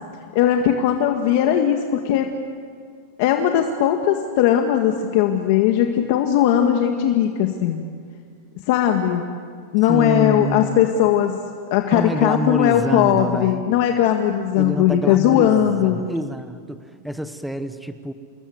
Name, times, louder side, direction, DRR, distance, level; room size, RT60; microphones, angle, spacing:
voice 1, 0.3-2.3 3.2-7.8 8.7-9.2 9.7-11.4 11.7-16.0, left 10 dB, 55° left, 4 dB, 1.7 m, -18 dB
voice 2, 9.9-10.8 11.9-13.6 14.5-18.1, equal, ahead, 10 dB, 1.2 m, -27 dB
28.5 x 20.5 x 8.0 m, 2.1 s
supercardioid pair, 155°, 0 cm